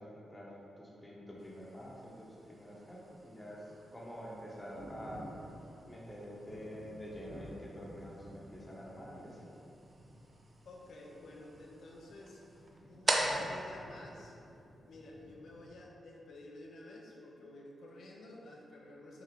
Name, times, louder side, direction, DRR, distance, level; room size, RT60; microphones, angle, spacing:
voice 1, 0.0-5.3 5.9-9.5, equal, 15° left, -5 dB, 1.1 m, -47 dB
sound 1, 1.4-15.0, right 2 dB, 35° right, 0.6 m, -43 dB
Thunder, 2.9-15.7, equal, 85° right, 1.2 m, -54 dB
voice 2, 10.6-14.3 14.8-19.2, left 2 dB, 75° left, -2 dB, 0.7 m, -52 dB
5.8 x 4.4 x 3.7 m, 2.8 s
wide cardioid pair, 145°, 0 cm